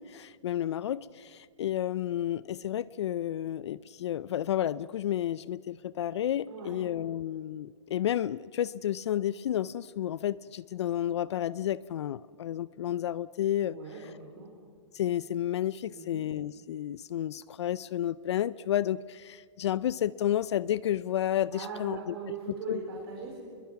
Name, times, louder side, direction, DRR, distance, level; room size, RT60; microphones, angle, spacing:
voice 1, 0.0-14.1 14.9-22.2 22.7-22.8, left 11 dB, 60° left, 18 dB, 0.5 m, -31 dB
voice 2, 6.5-6.8 13.7-14.0 14.3-14.5 15.9-16.2 21.5-23.4, right 5 dB, 50° right, -2 dB, 4.9 m, -40 dB
26.5 x 22.0 x 5.9 m, 2.1 s
hypercardioid pair, 170°, 16 cm